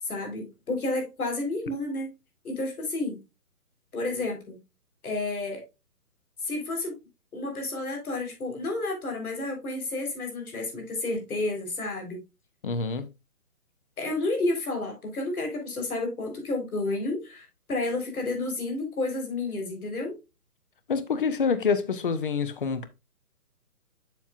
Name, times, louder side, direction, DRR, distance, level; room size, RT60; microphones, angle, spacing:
voice 1, 0.0-2.1 2.4-3.2 3.9-4.6 5.0-5.6 6.4-6.9 7.3-12.2 14.0-20.1, left 2 dB, 70° left, 4.1 m, -31 dB
voice 2, 12.6-13.0 20.9-22.9, left 5 dB, 35° left, 0.7 m, -26 dB
7.4 x 7.1 x 2.4 m
hypercardioid pair, 165°, 45 cm